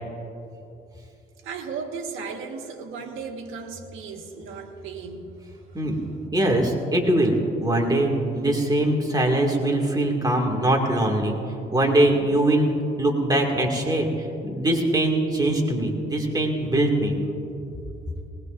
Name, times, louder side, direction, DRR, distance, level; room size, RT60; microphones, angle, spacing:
voice 1, 1.4-5.3 5.7-6.3, right 5 dB, 85° right, 2 dB, 1.5 m, -36 dB
voice 2, 6.3-7.3 7.6-8.1 8.4-11.4 11.7-12.7 13.0-14.1 14.5-17.2, right 1 dB, 20° right, 1 dB, 2.3 m, -22 dB
20.0 x 19.5 x 2.6 m, 2.9 s
cardioid pair, 90°, 20 cm